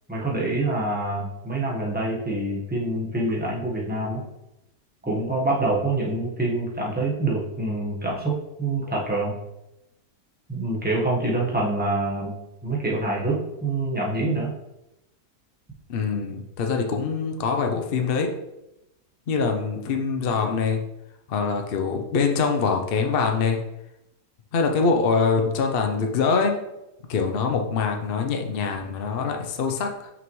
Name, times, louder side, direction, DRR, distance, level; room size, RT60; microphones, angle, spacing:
voice 1, 0.1-4.2 5.0-9.3 10.5-14.5, right 2 dB, 5° right, -3 dB, 1.0 m, -26 dB
voice 2, 15.9-18.3 19.3-20.8 21.3-23.6 24.5-26.5 27.1-30.1, left 5 dB, 60° left, 3 dB, 0.6 m, -24 dB
6.0 x 5.5 x 3.1 m, 0.89 s
omnidirectional pair, 1.8 m